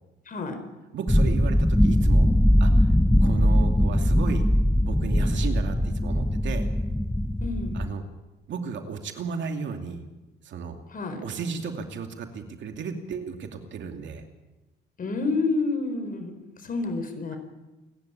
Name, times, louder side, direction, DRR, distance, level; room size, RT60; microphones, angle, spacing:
voice 1, 0.3-0.6 7.4-7.8 10.9-11.2 15.0-17.4, left 3 dB, 45° left, 7 dB, 4.5 m, -29 dB
voice 2, 0.9-2.3 2.6-2.9 3.2-4.5 4.8-6.7 7.7-8.0 8.5-10.0 10.4-10.8 11.2-14.2, right 5 dB, 70° right, 5 dB, 2.6 m, -34 dB
sound 1, 1.1-7.9, equal, 5° left, 1.0 m, -21 dB
28.5 x 11.0 x 8.7 m, 1.1 s
cardioid pair, 90°, 20 cm